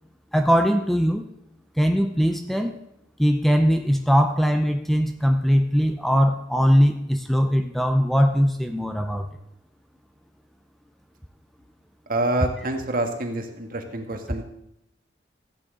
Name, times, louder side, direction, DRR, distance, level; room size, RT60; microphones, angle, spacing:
voice 1, 0.3-1.3 1.8-2.8 3.2-9.3, equal, ahead, 6 dB, 0.6 m, -20 dB
voice 2, 12.1-14.4, right 2 dB, 50° right, 4 dB, 1.7 m, -27 dB
15.0 x 9.0 x 3.9 m, 0.80 s
head